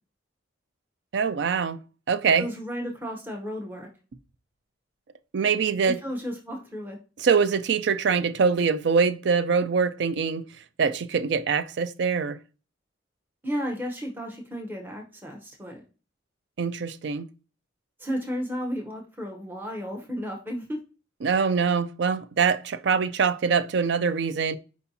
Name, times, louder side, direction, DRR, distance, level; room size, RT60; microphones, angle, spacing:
voice 1, 1.1-1.8 2.1-2.5 5.3-6.0 7.2-10.4 10.8-12.4 16.6-17.3 21.2-24.6, right 5 dB, 60° right, 0.4 m, -24 dB
voice 2, 2.4-3.9 5.9-7.0 13.4-15.8 18.0-20.8, equal, 10° right, 0.7 m, -33 dB
4.5 x 4.2 x 2.7 m
head